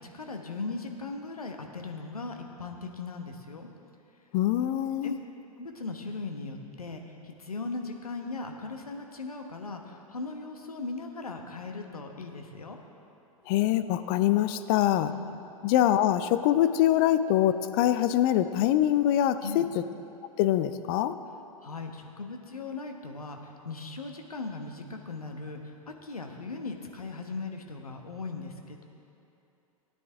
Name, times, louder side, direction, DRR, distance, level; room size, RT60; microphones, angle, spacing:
voice 1, 0.0-3.7 5.0-5.2 5.6-12.8 15.0-15.4 19.4-19.7 21.6-28.8, left 3 dB, 75° left, 3 dB, 1.2 m, -38 dB
voice 2, 4.3-5.2 13.5-15.1 15.6-19.8 20.4-21.1, left 12 dB, 35° left, 11 dB, 0.5 m, -24 dB
18.0 x 9.4 x 3.5 m, 2.9 s
figure-of-eight pair, 100°, 19 cm